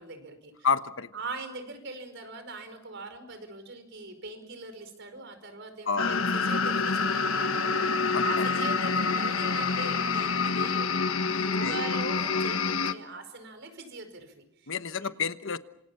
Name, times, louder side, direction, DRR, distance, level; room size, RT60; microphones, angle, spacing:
voice 1, 0.0-0.7 1.1-11.0 11.3-15.1, right 3 dB, 60° right, 9 dB, 5.1 m, -41 dB
voice 2, 0.6-1.1 5.9-6.2 8.1-8.4 11.6-11.9 14.7-15.6, left 5 dB, 65° left, 11 dB, 1.2 m, -29 dB
sound 1, 6.0-12.9, left 4 dB, 85° left, 1.3 m, -27 dB
27.5 x 26.5 x 5.7 m, 0.77 s
head